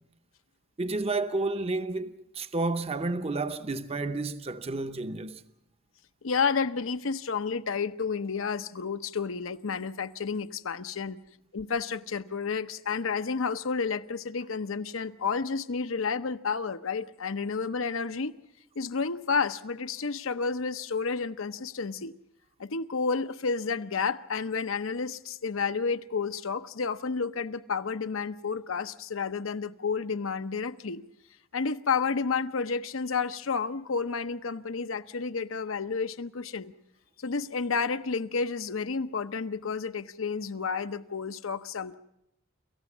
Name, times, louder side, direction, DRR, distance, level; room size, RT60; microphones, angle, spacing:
voice 1, 0.8-5.4, right 2 dB, 30° right, 0.7 m, -31 dB
voice 2, 6.2-11.2 11.5-18.3 18.8-22.1 22.6-31.0 31.5-36.7 37.2-42.0, left 5 dB, 75° left, 0.8 m, -31 dB
27.0 x 15.0 x 7.2 m
head